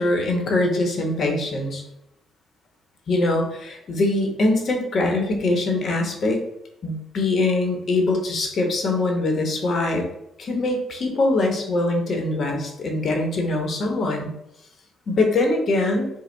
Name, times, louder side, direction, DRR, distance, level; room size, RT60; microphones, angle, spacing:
voice 1, 0.0-1.8 3.1-6.4 6.8-10.0 10.4-14.3 15.1-16.1, left 2 dB, 55° left, 2 dB, 1.0 m, -23 dB
5.0 x 2.3 x 3.4 m, 0.81 s
cardioid pair, 90°, 0 cm